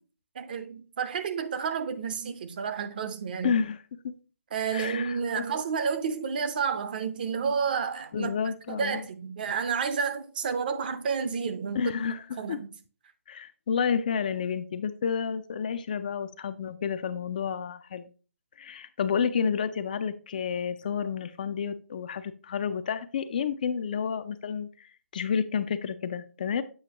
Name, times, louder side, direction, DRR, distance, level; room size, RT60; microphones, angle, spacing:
voice 1, 0.3-3.6 4.5-8.3 8.7-11.9 12.4-12.7, right 6 dB, 35° right, 0.7 m, -30 dB
voice 2, 3.4-3.8 4.0-4.2 4.7-5.6 8.1-9.0 11.8-12.6 13.3-18.1 18.6-26.6, left 7 dB, 35° left, 0.4 m, -30 dB
7.8 x 5.6 x 2.9 m
figure-of-eight pair, 145°, 8 cm